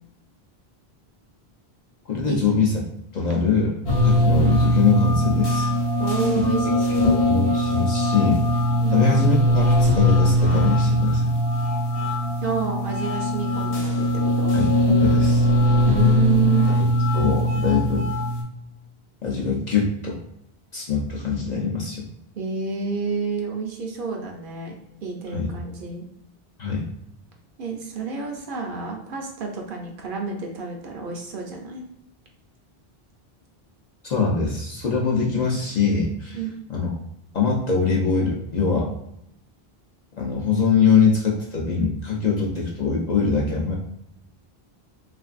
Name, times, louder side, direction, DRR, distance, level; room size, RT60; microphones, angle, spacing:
voice 1, 2.1-2.7 3.1-5.7 6.4-6.5 6.9-8.4 8.9-11.3 14.5-14.7 15.0-15.5 16.8-16.9 17.1-18.1 19.2-20.2 20.7-22.0 25.3-25.5 26.6-26.9 34.0-36.4 36.7-36.9 37.3-38.9 40.2-43.7, left 5 dB, 50° left, -3 dB, 0.6 m, -23 dB
sound 1, 3.9-18.4, left 1 dB, 70° left, 1.0 m, -20 dB
voice 2, 6.0-7.3 8.8-9.0 12.4-14.5 15.9-16.7 22.4-24.7 25.0-26.0 27.6-31.8 36.3-36.5, right 6 dB, 65° right, 1 dB, 0.7 m, -29 dB
3.2 x 2.5 x 2.4 m, 0.76 s
omnidirectional pair, 1.0 m